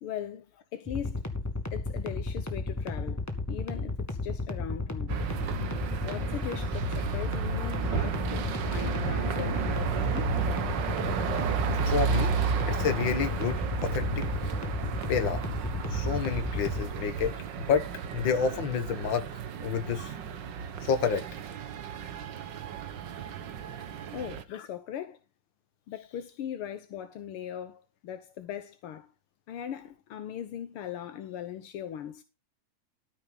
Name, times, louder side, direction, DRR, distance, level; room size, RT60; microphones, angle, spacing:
voice 1, 0.0-0.5 0.7-1.2 1.7-5.2 6.0-10.4 24.1-25.2 25.9-29.1 29.5-32.2, left 10 dB, 70° left, 1.3 m, -39 dB
sound 1, 0.9-16.8, left 3 dB, 10° left, 1.0 m, -33 dB
sound 2, 5.1-24.4, right 6 dB, 80° right, 1.0 m, -33 dB
voice 2, 11.9-12.3 12.7-14.1 15.1-15.4 15.9-19.3 19.6-20.1 20.8-21.2, left 6 dB, 45° left, 1.7 m, -29 dB
13.5 x 7.7 x 4.0 m
omnidirectional pair, 3.6 m